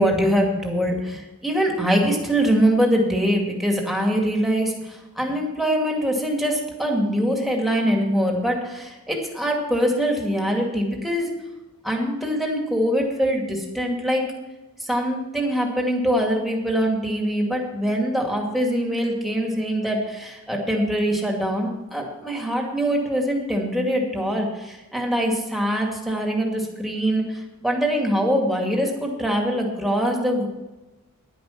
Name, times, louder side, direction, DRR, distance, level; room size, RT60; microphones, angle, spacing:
voice 1, 0.0-11.3 11.8-14.2 14.8-30.5, equal, ahead, 0 dB, 2.2 m, -23 dB
10.5 x 10.5 x 5.9 m, 1.0 s
head